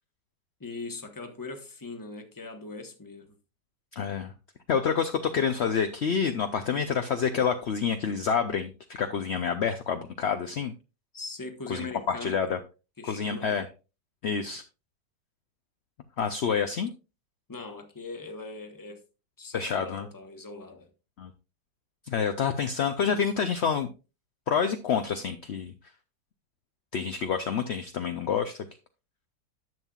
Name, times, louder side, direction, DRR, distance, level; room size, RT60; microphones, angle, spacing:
voice 1, 0.6-3.3 11.1-12.4 13.0-13.6 17.5-19.0 19.4-20.9, left 3 dB, 15° left, 1.0 m, -40 dB
voice 2, 4.0-4.3 4.7-8.7 9.0-10.7 11.7-12.6 13.0-13.7 14.2-14.6 16.2-16.9 19.5-20.1 21.2-21.3 22.1-23.9 24.5-25.7 26.9-28.6, left 6 dB, 65° left, 0.6 m, -28 dB
10.5 x 7.3 x 2.4 m
omnidirectional pair, 1.9 m